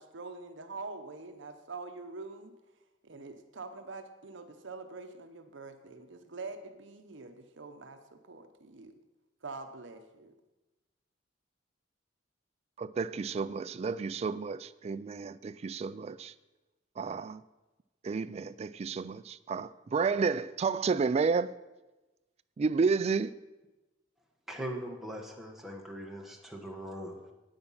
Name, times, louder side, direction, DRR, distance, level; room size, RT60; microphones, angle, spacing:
voice 1, 0.0-2.6 3.0-9.0 9.4-10.4, right 3 dB, 70° right, 0.9 m, -45 dB
voice 2, 12.8-16.3 17.0-17.4 18.0-21.5 22.6-23.3, right 5 dB, 35° right, 0.3 m, -31 dB
voice 3, 24.5-27.3, equal, ahead, 1.1 m, -41 dB
8.8 x 8.7 x 5.6 m
head